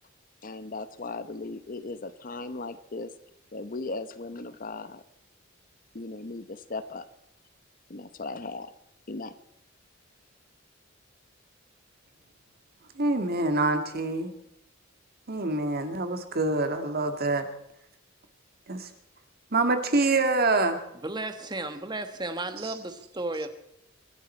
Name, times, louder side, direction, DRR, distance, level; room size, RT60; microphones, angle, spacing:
voice 1, 0.4-3.1 3.5-5.0 5.9-7.1 7.9-8.7 9.1-9.3, left 3 dB, 45° left, 13 dB, 0.9 m, -37 dB
voice 2, 13.0-14.3 15.3-17.5 18.7-18.9 19.5-20.8 22.6-22.7, right 2 dB, 50° right, 7 dB, 2.0 m, -26 dB
voice 3, 21.0-23.5, right 2 dB, 20° right, 8 dB, 1.5 m, -34 dB
25.5 x 12.0 x 4.4 m, 0.80 s
head